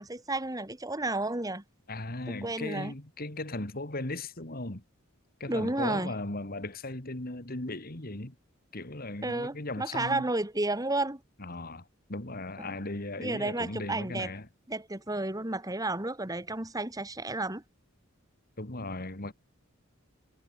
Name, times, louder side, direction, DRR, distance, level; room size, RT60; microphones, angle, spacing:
voice 1, 0.0-1.6 2.3-2.9 5.5-6.1 9.2-11.2 12.6-12.7 13.2-14.3 14.7-17.6, right 2 dB, 20° right, 2.5 m, -32 dB
voice 2, 1.9-4.8 5.4-8.3 8.7-10.3 11.4-14.5 18.6-19.3, left 2 dB, 45° left, 2.6 m, -37 dB
head